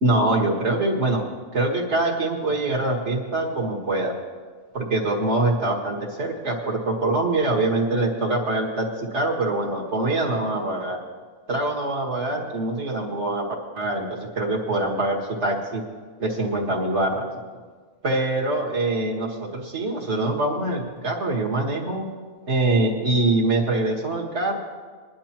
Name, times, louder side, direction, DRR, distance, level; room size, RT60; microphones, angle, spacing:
voice 1, 0.0-1.2 1.5-4.1 4.7-11.0 11.5-13.4 13.7-15.8 16.2-17.2 18.0-22.0 22.5-24.6, right 2 dB, 50° right, -1 dB, 2.0 m, -24 dB
21.5 x 11.0 x 3.0 m, 1.5 s
omnidirectional pair, 1.5 m